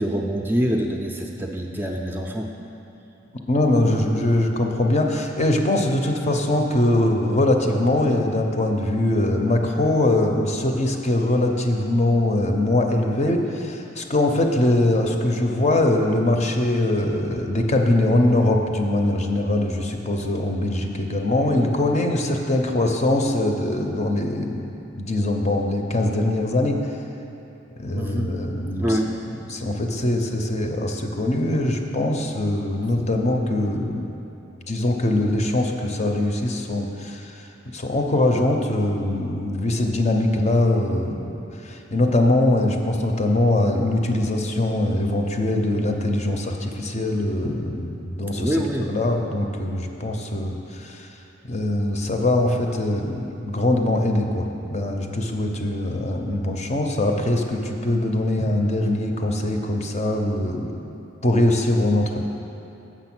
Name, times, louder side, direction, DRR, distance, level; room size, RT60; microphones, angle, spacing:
voice 1, 0.0-2.5 28.0-28.3 28.8-29.2 48.4-48.9, equal, 10° right, 1 dB, 0.4 m, -25 dB
voice 2, 3.5-24.7 25.0-26.8 27.8-29.0 29.5-34.1 34.7-37.5 37.7-48.6 48.9-51.1 51.4-60.7 61.2-62.2, left 1 dB, 35° left, 3 dB, 0.6 m, -22 dB
7.1 x 6.5 x 6.0 m, 2.8 s
head